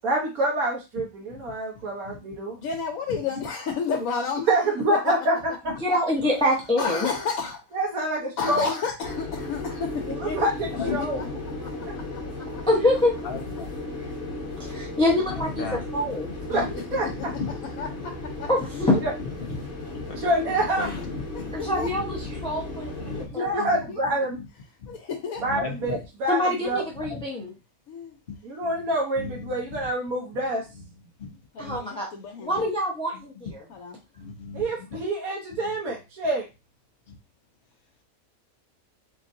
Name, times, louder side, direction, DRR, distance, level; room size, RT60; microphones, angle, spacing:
voice 1, 0.0-2.6 4.5-5.5 7.7-8.7 10.0-11.2 16.5-17.1 19.0-19.1 20.1-20.9 23.4-24.4 25.4-26.8 28.4-30.6 34.5-36.5, right 1 dB, 85° right, -1 dB, 1.4 m, -26 dB
voice 2, 1.8-2.2 5.7-5.8 10.7-11.3 13.2-13.7 14.3-14.4 15.3-16.1 17.2-17.5 18.5-18.6 19.2-19.5 19.9-20.2 20.8-21.5 21.9-22.0 22.3-22.5 23.0-23.3 24.8-24.9 25.5-26.0 27.0-27.2 28.6-28.7 29.2-29.5 31.2-31.8 33.3-33.4 34.2-34.9 37.1-37.2, left 5 dB, 45° left, 2 dB, 0.9 m, -36 dB
voice 3, 2.5-4.6 5.0-5.1 5.9-6.0 6.8-7.8 8.4-10.5 10.8-11.2 11.6-12.6 16.5-16.7 17.0-17.1 17.8-18.1 18.4-18.5 20.5-20.7 21.3-21.9 23.1-24.0 24.9-25.4 27.9-28.2 31.5-32.7 33.7-34.0, left 5 dB, 75° left, 2 dB, 1.2 m, -32 dB
voice 4, 5.8-7.1 12.7-13.1 14.6-16.3 18.5-19.0 21.5-23.7 26.3-27.5 31.6-32.1 32.4-33.6, left 1 dB, 5° left, -3 dB, 0.7 m, -25 dB
sound 1, 9.0-23.3, left 2 dB, 55° right, 2.4 m, -35 dB
3.8 x 3.5 x 2.6 m, 0.27 s
omnidirectional pair, 1.5 m